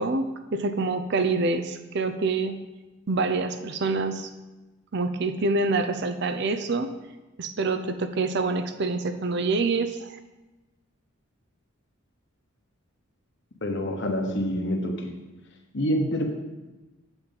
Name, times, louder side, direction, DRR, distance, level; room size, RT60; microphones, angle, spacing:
voice 1, 0.0-2.6 3.1-4.3 4.9-6.9 7.4-10.2, right 3 dB, 50° right, 9 dB, 0.5 m, -26 dB
voice 2, 13.6-15.1 15.7-16.2, equal, 55° left, 3 dB, 1.1 m, -26 dB
8.5 x 7.1 x 4.0 m, 1.1 s
head